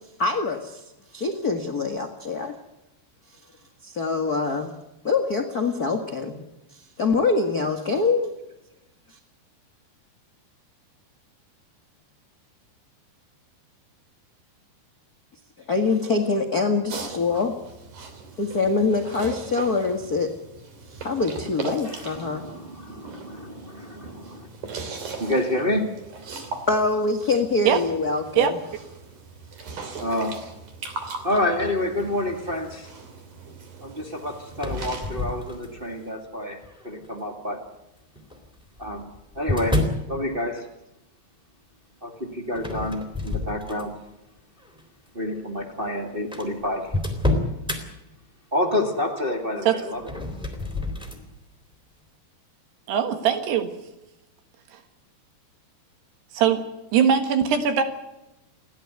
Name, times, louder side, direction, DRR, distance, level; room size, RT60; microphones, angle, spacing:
voice 1, 0.2-0.8 1.1-2.5 3.8-4.7 5.0-6.4 6.7-8.3 9.1-9.2 15.7-17.6 18.4-20.3 20.9-22.4 26.7-28.6, left 4 dB, 80° left, 3 dB, 0.8 m, -24 dB
sound 1, 16.9-36.1, right 4 dB, 50° right, 4.2 m, -39 dB
voice 2, 21.8-24.5 25.2-25.8 30.0-30.4 31.2-32.9 33.8-36.6 36.8-37.6 38.8-39.1 39.3-39.8 40.1-40.7 42.0-43.9 45.1-46.9 48.5-50.0, left 1 dB, 25° right, 1 dB, 1.4 m, -28 dB
sound 2, 34.5-36.0 36.6-37.1 38.2-40.1 42.5-44.1 44.6-44.8 45.6-45.7 45.9-46.0 46.3-47.8 49.9-51.2, left 2 dB, ahead, 2.8 m, -28 dB
voice 3, 52.9-53.7 54.7-54.8 56.3-56.6 56.9-57.8, right 8 dB, 85° right, 8 dB, 3.7 m, -21 dB
29.5 x 11.5 x 9.5 m, 0.93 s
omnidirectional pair, 4.6 m